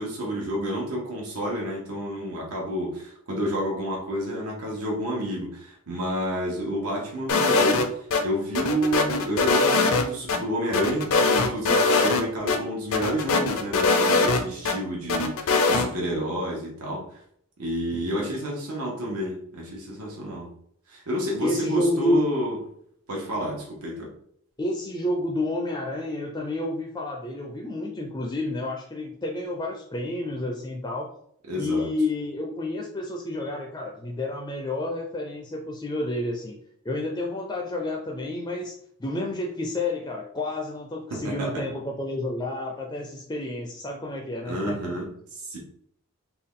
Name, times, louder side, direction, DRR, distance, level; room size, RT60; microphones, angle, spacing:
voice 1, 0.0-17.2 17.6-20.5 20.9-22.6 23.1-24.1 31.5-31.9 41.1-41.6 44.5-45.6, right 1 dB, 85° right, -2 dB, 1.1 m, -30 dB
sound 1, 7.3-8.2 8.5-10.4 10.7-12.2 12.5-12.6 12.9-14.7 15.1-15.9, left 3 dB, 70° left, 0.5 m, -21 dB
voice 2, 17.9-18.4 21.4-22.3 24.6-31.1 31.5-36.6 36.8-38.7 39.0-44.8, left 1 dB, 20° left, 0 dB, 0.4 m, -30 dB
3.6 x 2.3 x 3.7 m, 0.66 s
head